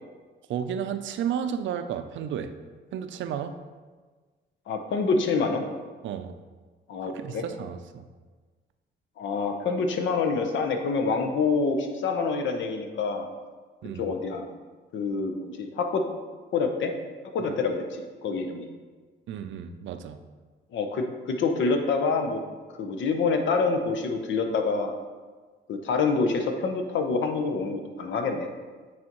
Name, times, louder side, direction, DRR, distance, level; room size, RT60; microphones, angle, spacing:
voice 1, 0.5-2.5 2.9-3.5 6.0-6.3 7.0-8.0 13.8-14.1 19.3-20.2, right 8 dB, 70° right, 9 dB, 0.5 m, -32 dB
voice 2, 4.7-5.6 6.9-7.4 9.2-13.3 13.9-14.5 14.9-16.0 16.5-16.9 17.3-18.7 20.7-22.4 22.8-24.9 25.7-28.5, left 4 dB, 70° left, 5 dB, 0.8 m, -26 dB
8.5 x 4.1 x 3.0 m, 1.4 s
cardioid pair, 90°, 20 cm